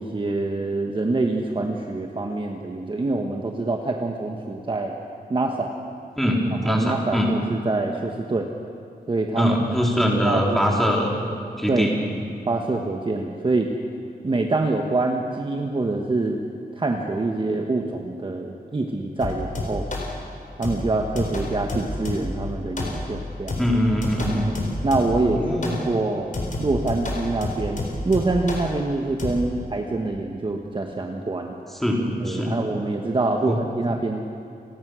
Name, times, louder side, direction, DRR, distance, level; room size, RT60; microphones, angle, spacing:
voice 1, 0.0-4.9 5.3-5.7 6.6-8.5 9.1-9.5 10.2-10.6 11.7-11.9 12.5-13.7 14.2-16.4 16.8-19.8 20.6-23.6 24.5-25.5 25.9-26.3 26.6-31.6 32.2-34.3, right 2 dB, 30° right, 2 dB, 1.3 m, -25 dB
voice 2, 6.2-7.3 9.4-11.1 11.6-12.0 23.6-24.5 25.4-25.8 31.8-32.5 33.5-33.6, equal, ahead, -2 dB, 3.8 m, -22 dB
sound 1, 19.2-20.1 20.6-22.4 22.8-23.2 23.5-25.3 25.6-25.9 26.3-28.7 29.2-29.3, left 2 dB, 50° left, 4.3 m, -29 dB
29.5 x 19.5 x 6.3 m, 2.6 s
wide cardioid pair, 165°, 17 cm